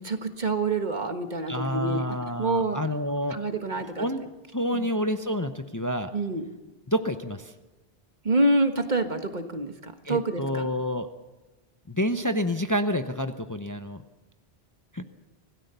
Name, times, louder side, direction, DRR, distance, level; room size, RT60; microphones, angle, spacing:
voice 1, 0.0-2.8 3.3-4.1 4.7-5.0 6.1-6.5 8.2-10.7, right 2 dB, 45° right, 7 dB, 1.6 m, -27 dB
voice 2, 1.5-3.4 4.0-4.2 4.5-6.1 6.9-7.5 10.0-11.1 11.9-14.0 14.9-15.1, equal, 20° left, 8 dB, 0.9 m, -28 dB
25.5 x 17.5 x 6.9 m, 1.1 s
omnidirectional pair, 1.0 m